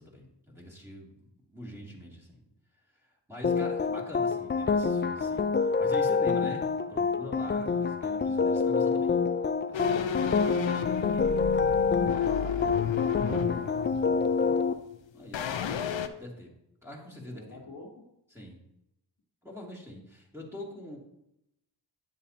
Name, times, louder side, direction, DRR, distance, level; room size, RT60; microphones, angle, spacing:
voice 1, 0.0-2.4 2.9-9.1 9.7-10.6 12.0-12.3 15.1-15.5 16.2-16.5 16.8-17.6 18.3-18.6 19.4-21.0, left 1 dB, 5° right, -3 dB, 2.7 m, -44 dB
sound 1, 3.4-14.7, left 5 dB, 25° left, 0.4 m, -27 dB
sound 2, 9.7-14.9 15.3-16.1, left 9 dB, 75° left, 0.7 m, -32 dB
voice 2, 9.9-11.3 12.0-14.6 17.3-18.0, left 2 dB, 50° left, 0 dB, 1.4 m, -47 dB
9.4 x 7.3 x 2.9 m, 0.83 s
cardioid pair, 65°, 46 cm